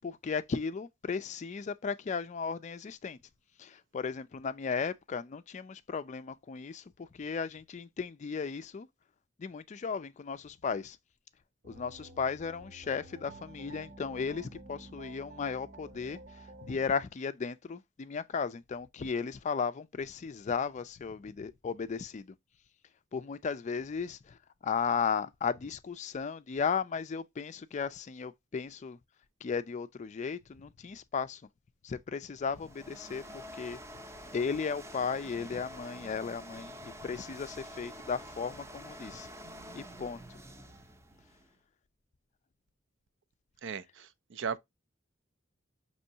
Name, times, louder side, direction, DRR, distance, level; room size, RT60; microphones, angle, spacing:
voice 1, 0.0-3.2 3.6-8.9 9.4-11.0 11.6-22.4 23.1-29.0 29.4-31.4 31.8-33.8 34.3-39.3 39.7-40.2, left 5 dB, 35° left, 0.4 m, -35 dB
sound 1, 11.6-16.8, right 2 dB, 45° right, 0.9 m, -50 dB
sound 2, 32.4-41.6, equal, 15° right, 0.6 m, -48 dB
voice 2, 43.6-44.6, right 6 dB, 65° right, 0.5 m, -37 dB
5.4 x 3.0 x 2.7 m
head